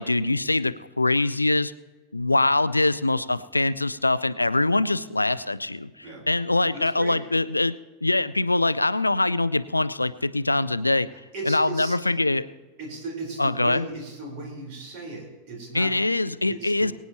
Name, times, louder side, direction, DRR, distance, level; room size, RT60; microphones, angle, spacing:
voice 1, 0.0-1.7 2.1-5.9 6.3-7.7 8.0-11.1 11.5-12.5 13.4-13.8 15.7-16.9, left 2 dB, 85° left, 16 dB, 0.4 m, -23 dB
voice 2, 6.7-7.2 11.3-11.9 12.8-15.9 16.5-16.9, right 2 dB, 45° right, 0 dB, 4.1 m, -36 dB
23.0 x 9.3 x 3.0 m, 1.2 s
figure-of-eight pair, 90°, 0 cm